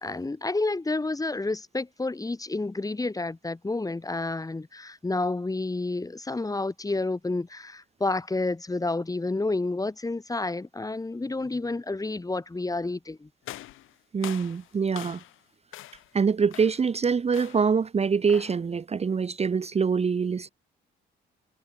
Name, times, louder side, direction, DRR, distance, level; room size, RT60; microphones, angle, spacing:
voice 1, 0.0-13.3, left 2 dB, 15° left, 3.1 m, -30 dB
sound 1, 13.4-15.4 15.7-16.1 16.5-16.9 17.3-17.8 18.3-18.7, left 16 dB, 90° left, 2.5 m, -43 dB
voice 2, 14.1-15.2 16.1-20.5, right 5 dB, 30° right, 1.0 m, -25 dB
cardioid pair, 90°, 20 cm